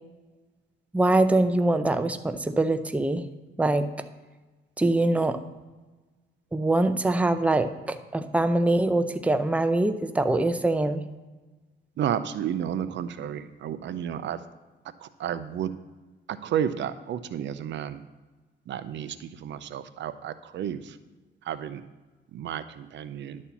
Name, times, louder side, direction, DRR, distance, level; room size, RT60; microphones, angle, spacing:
voice 1, 0.9-3.2 3.6-3.9 4.8-5.4 6.5-11.0, right 2 dB, 5° right, 9 dB, 0.6 m, -23 dB
voice 2, 12.0-14.4 15.0-15.7 16.4-18.0 18.7-21.0 21.5-21.8 22.3-23.4, right 9 dB, 65° right, 13 dB, 0.6 m, -31 dB
11.0 x 4.3 x 7.1 m, 1.2 s
cardioid pair, 90°, 20 cm